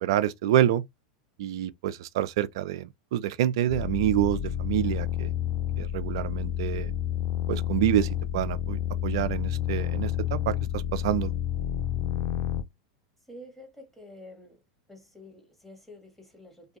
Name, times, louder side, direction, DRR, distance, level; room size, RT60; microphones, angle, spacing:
voice 1, 0.0-0.8 1.4-5.3 5.8-6.9 7.5-11.3, right 12 dB, 65° right, 0.3 m, -27 dB
sound 1, 3.7-12.6, left 11 dB, 50° left, 0.5 m, -30 dB
voice 2, 13.3-14.6 14.9-16.8, left 1 dB, 5° left, 1.5 m, -48 dB
2.6 x 2.3 x 2.8 m
hypercardioid pair, 90°, 3 cm